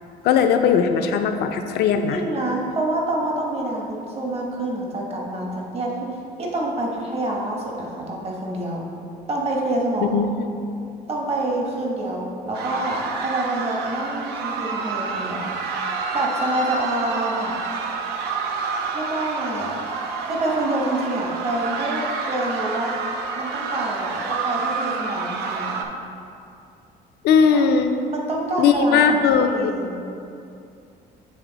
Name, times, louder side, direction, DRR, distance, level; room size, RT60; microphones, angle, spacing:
voice 1, 0.2-2.2 10.0-10.3 27.2-27.9 28.6-29.7, left 6 dB, 75° left, 6 dB, 0.5 m, -18 dB
voice 2, 1.9-8.9 9.3-10.2 11.1-15.5 16.1-17.5 18.9-19.8 20.2-22.9 23.4-25.9 27.5-27.6 28.1-30.1, right 1 dB, 35° right, -2 dB, 1.1 m, -27 dB
sound 1, 12.5-25.8, right 4 dB, 80° right, 0.6 m, -28 dB
8.3 x 3.3 x 4.0 m, 2.5 s
cardioid pair, 110°, 17 cm